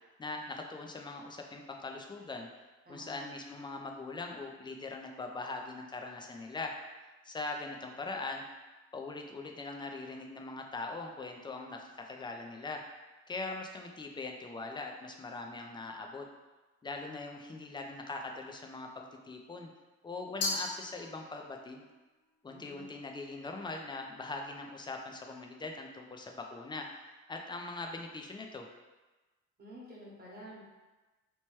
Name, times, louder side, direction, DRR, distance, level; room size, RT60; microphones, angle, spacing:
voice 1, 0.2-2.5 2.9-6.7 7.2-8.4 8.9-12.8 13.3-16.3 16.8-19.7 20.0-21.9 22.4-26.9 27.3-28.7, left 3 dB, 15° left, 2 dB, 0.3 m, -41 dB
voice 2, 2.9-3.2 22.5-22.9 29.6-30.6, equal, 30° right, -6 dB, 1.1 m, -50 dB
Glass, 20.4-21.6, left 3 dB, 75° left, 0.6 m, -36 dB
2.9 x 2.1 x 3.0 m, 1.2 s
cardioid pair, 90°, 30 cm